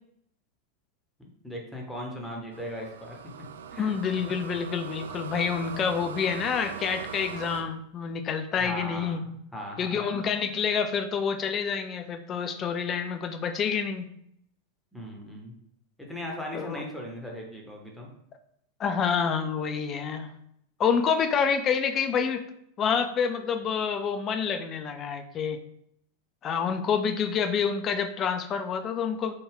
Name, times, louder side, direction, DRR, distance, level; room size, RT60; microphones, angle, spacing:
voice 1, 1.2-3.2 3.7-3.9 8.6-9.2 9.5-10.2 14.9-15.5 16.1-18.1, equal, ahead, -1 dB, 0.8 m, -38 dB
sound 1, 2.5-7.6, right 7 dB, 65° right, 0.3 m, -40 dB
voice 2, 3.8-9.2 9.8-14.1 16.5-16.8 18.8-20.3 20.8-22.4 22.8-25.6 26.4-29.3, left 6 dB, 30° left, 7 dB, 0.3 m, -28 dB
3.5 x 2.2 x 3.4 m, 0.72 s
figure-of-eight pair, 90°, 0 cm